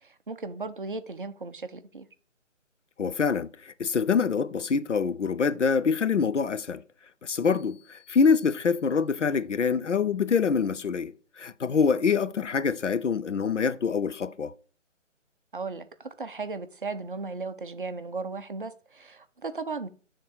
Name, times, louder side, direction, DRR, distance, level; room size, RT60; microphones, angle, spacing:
voice 1, 0.0-2.1 15.5-19.9, right 3 dB, 45° right, 0.6 m, -36 dB
voice 2, 3.0-6.8 7.2-14.5, left 5 dB, 70° left, 0.6 m, -25 dB
sound 1, 7.4-9.3, left 9 dB, 10° right, 2.6 m, -60 dB
9.4 x 3.8 x 4.7 m
figure-of-eight pair, 150°, 38 cm